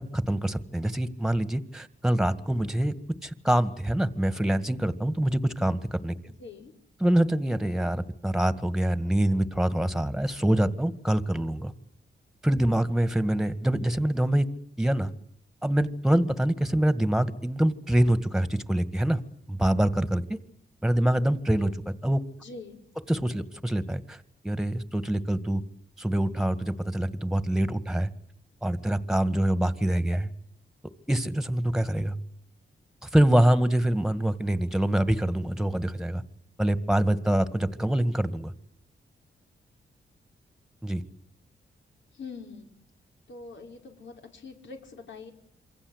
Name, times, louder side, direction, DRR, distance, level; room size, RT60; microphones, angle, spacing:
voice 1, 0.1-2.9 3.2-6.2 7.0-11.7 12.4-14.5 14.8-15.1 15.6-19.2 19.5-20.4 20.8-22.2 23.1-24.2 24.4-25.6 26.0-28.1 28.6-30.3 31.1-32.1 33.0-36.2 36.6-38.5 40.8-41.0, right 1 dB, ahead, 12 dB, 1.9 m, -25 dB
voice 2, 6.4-6.7 22.4-22.8 42.1-42.7 43.3-45.3, left 4 dB, 75° left, 3 dB, 5.4 m, -43 dB
27.5 x 24.0 x 8.1 m, 0.68 s
cardioid pair, 90°, 19 cm